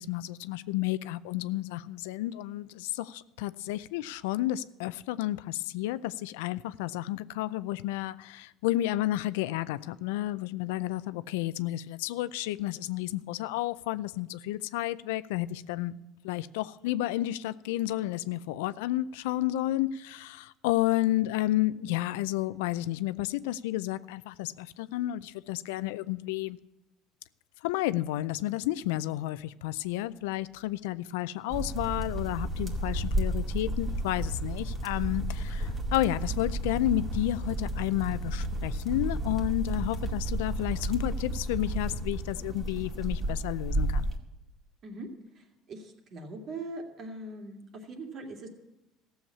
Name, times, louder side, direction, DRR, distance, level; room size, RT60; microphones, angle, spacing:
voice 1, 0.0-26.6 27.6-44.1, left 15 dB, 85° left, 0.4 m, -31 dB
sound 1, 31.5-44.2, right 1 dB, 35° right, 2.2 m, -32 dB
voice 2, 45.7-48.5, right 2 dB, 50° right, 2.6 m, -41 dB
14.5 x 7.2 x 8.5 m
supercardioid pair, 95°, 0 cm